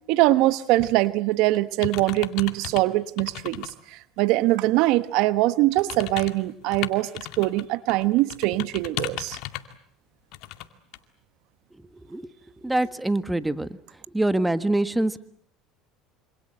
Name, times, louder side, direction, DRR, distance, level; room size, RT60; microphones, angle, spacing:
voice 1, 0.1-9.4, right 18 dB, 70° right, 14 dB, 1.2 m, -23 dB
sound 1, 0.8-1.1 1.5-2.8 3.2-3.7 4.2-4.3 5.7-7.6 7.9-9.7 10.3-10.7 10.9-11.0, left 15 dB, 70° left, 2.2 m, -35 dB
voice 2, 12.6-13.7 14.1-15.2, right 1 dB, 10° right, 13 dB, 1.5 m, -24 dB
27.0 x 26.0 x 7.8 m, 0.65 s
supercardioid pair, 95°, 0 cm